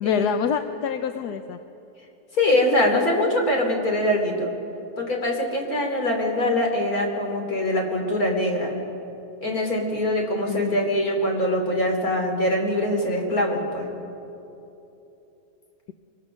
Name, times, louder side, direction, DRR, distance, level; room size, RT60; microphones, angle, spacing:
voice 1, 0.0-1.6 10.5-10.8, left 8 dB, 85° left, 8 dB, 1.3 m, -27 dB
voice 2, 2.3-4.5 5.0-8.7 9.4-13.9, left 1 dB, 65° left, 1 dB, 3.6 m, -23 dB
24.0 x 23.5 x 6.4 m, 2.9 s
omnidirectional pair, 1.7 m